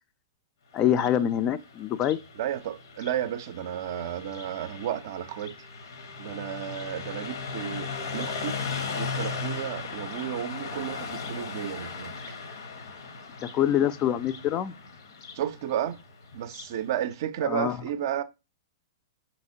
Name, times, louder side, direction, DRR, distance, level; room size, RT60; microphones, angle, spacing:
voice 1, 0.7-2.2 13.5-14.7 17.4-17.8, left 10 dB, 30° left, 0.3 m, -25 dB
Car passing by, 0.8-16.8, left 4 dB, 65° left, 0.7 m, -37 dB
voice 2, 2.4-5.7 6.2-8.6 8.9-12.3 15.3-16.0 16.3-18.2, right 10 dB, 55° right, 0.4 m, -32 dB
5.4 x 2.8 x 2.6 m
hypercardioid pair, 110°, 2 cm